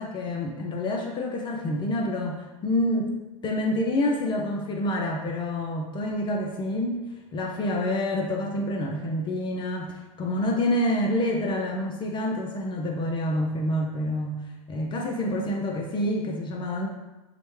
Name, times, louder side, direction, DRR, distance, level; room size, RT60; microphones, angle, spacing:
voice 1, 0.0-3.1 3.4-16.9, left 1 dB, 25° left, 0 dB, 0.4 m, -27 dB
4.3 x 2.1 x 3.0 m, 1.1 s
hypercardioid pair, 105°, 18 cm